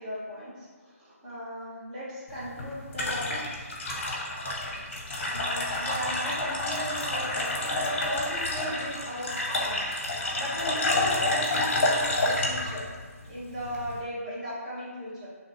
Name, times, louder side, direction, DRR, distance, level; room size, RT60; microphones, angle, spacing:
voice 1, 0.0-3.5 5.3-12.9 13.3-15.3, equal, 30° right, -8 dB, 1.3 m, -37 dB
sound 1, 2.3-14.0, left 2 dB, 45° left, 0.8 m, -29 dB
3.8 x 3.0 x 3.0 m, 1.4 s
figure-of-eight pair, 150°, 8 cm